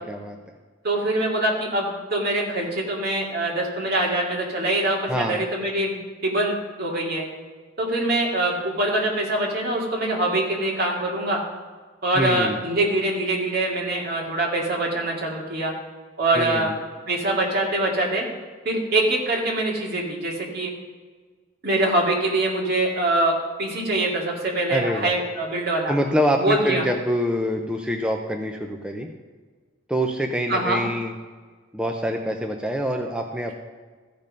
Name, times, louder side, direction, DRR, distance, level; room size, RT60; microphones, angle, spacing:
voice 1, 0.8-7.2 7.8-11.4 12.0-15.7 16.2-16.7 17.1-18.3 18.6-20.7 21.6-23.3 23.6-25.9 26.4-26.8 30.5-30.8, right 2 dB, 55° right, -1 dB, 2.3 m, -24 dB
voice 2, 5.1-5.4 12.1-12.6 16.3-16.7 24.7-25.1 25.9-29.1 29.9-31.1 31.7-33.5, equal, 5° right, 2 dB, 0.6 m, -25 dB
14.5 x 5.3 x 5.3 m, 1.4 s
head